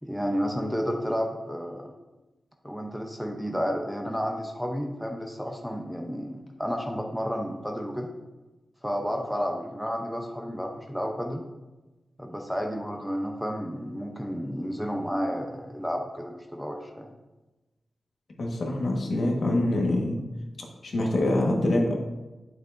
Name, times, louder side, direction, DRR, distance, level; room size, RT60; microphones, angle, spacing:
voice 1, 0.0-1.9 2.6-8.1 8.8-11.4 12.2-17.1, equal, ahead, 2 dB, 0.6 m, -31 dB
voice 2, 18.4-20.2 20.8-21.9, left 1 dB, 55° left, 0 dB, 1.4 m, -25 dB
8.7 x 6.6 x 2.5 m, 1.1 s
wide cardioid pair, 120°, 0 cm